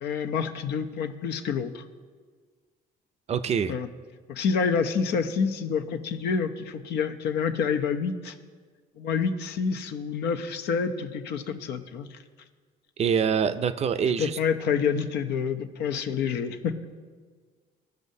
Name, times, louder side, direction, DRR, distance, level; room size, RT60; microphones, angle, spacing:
voice 1, 0.0-1.8 3.7-3.9 4.3-8.3 9.0-12.2 14.0-16.8, left 6 dB, 80° left, 8 dB, 0.8 m, -28 dB
voice 2, 3.3-3.7 13.0-14.4, right 7 dB, 40° right, 11 dB, 0.5 m, -25 dB
17.5 x 6.5 x 2.7 m, 1.5 s
cardioid pair, 110°, 17 cm